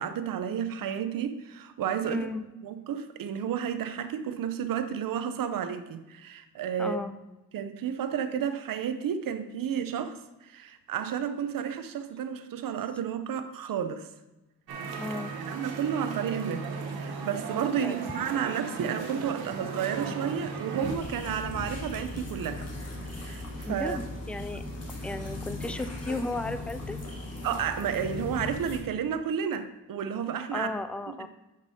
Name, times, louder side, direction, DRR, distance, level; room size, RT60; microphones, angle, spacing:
voice 1, 0.0-2.3 2.6-7.0 7.5-14.1 15.5-22.7 23.2-24.0 27.4-30.7 31.2-31.3, right 8 dB, 65° right, 10 dB, 0.7 m, -32 dB
voice 2, 2.0-2.4 6.8-7.1 15.0-15.3 17.8-18.0 23.7-24.6 25.0-27.0 30.5-31.3, left 2 dB, 5° left, 11 dB, 0.3 m, -34 dB
sound 1, 14.7-21.0, right 4 dB, 85° right, 1.1 m, -36 dB
sound 2, 20.8-28.8, left 2 dB, 40° left, 1.8 m, -38 dB
9.2 x 5.3 x 2.8 m, 1.0 s
cardioid pair, 75°, 37 cm